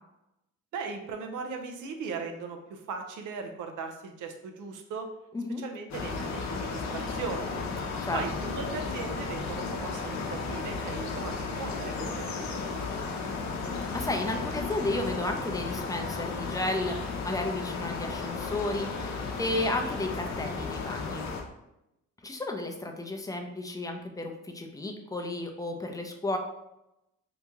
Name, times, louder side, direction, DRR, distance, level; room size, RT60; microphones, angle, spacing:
voice 1, 0.7-5.1 5.6-7.6 8.1-13.0, right 5 dB, 80° right, 5 dB, 0.6 m, -38 dB
sound 1, 5.9-21.4, left 4 dB, 65° left, 0.7 m, -34 dB
voice 2, 13.9-17.0 17.2-21.2 22.2-26.4, left 2 dB, 10° left, 4 dB, 0.5 m, -33 dB
2.9 x 2.7 x 3.5 m, 0.88 s
cardioid pair, 90°, 30 cm